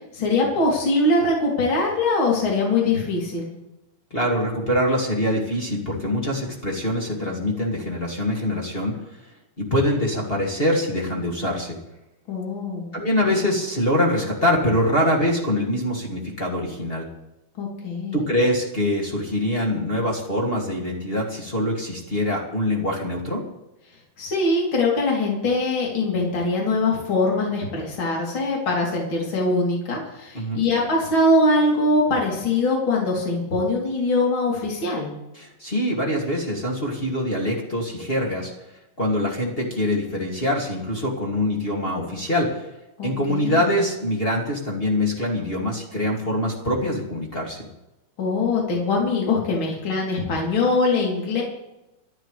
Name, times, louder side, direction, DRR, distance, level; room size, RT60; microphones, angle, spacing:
voice 1, 0.1-3.5 12.3-12.9 17.6-18.3 24.2-35.1 43.0-43.7 48.2-51.4, left 2 dB, 35° left, -3 dB, 4.0 m, -22 dB
voice 2, 4.1-8.9 9.6-11.8 12.9-17.1 18.1-23.4 30.3-30.6 35.3-38.5 39.0-42.7 43.0-47.6, left 1 dB, 20° left, -1 dB, 2.1 m, -24 dB
25.5 x 11.5 x 3.4 m, 0.92 s
omnidirectional pair, 4.0 m